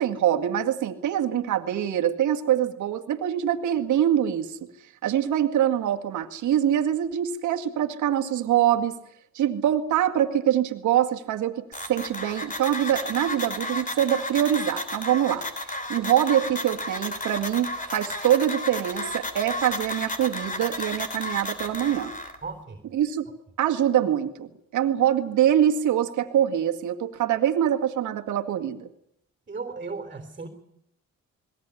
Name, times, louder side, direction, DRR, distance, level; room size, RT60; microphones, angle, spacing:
voice 1, 0.0-4.7 5.0-8.9 9.3-15.5 15.9-22.1 22.9-23.3 23.6-28.9, right 10 dB, 80° right, 4 dB, 2.1 m, -24 dB
sound 1, 11.7-22.4, left 1 dB, 25° left, 3.2 m, -33 dB
voice 2, 22.4-22.8 29.5-30.5, right 4 dB, 30° right, 6 dB, 3.5 m, -35 dB
21.0 x 17.5 x 10.0 m, 0.78 s
cardioid pair, 90°, 30 cm